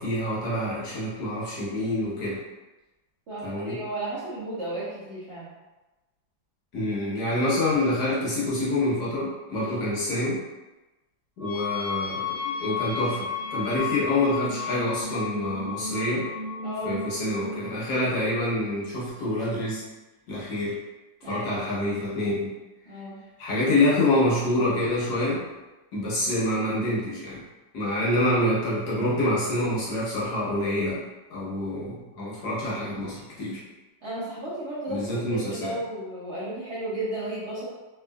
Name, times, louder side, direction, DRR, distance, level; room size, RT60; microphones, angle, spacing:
voice 1, 0.0-2.4 3.4-3.8 6.7-10.4 11.4-16.3 16.8-19.8 20.3-20.7 21.2-22.5 23.4-25.4 25.9-27.4 27.7-31.0 31.3-33.6 34.9-35.7, left 1 dB, 65° left, -7 dB, 1.4 m, -26 dB
voice 2, 3.3-5.5 16.6-17.0 21.2-21.5 22.9-23.1 34.0-37.7, right 1 dB, 60° right, -9 dB, 0.7 m, -34 dB
sound 1, 11.4-17.8, left 5 dB, 5° right, 0.6 m, -33 dB
3.5 x 2.5 x 2.2 m, 1.1 s
omnidirectional pair, 2.0 m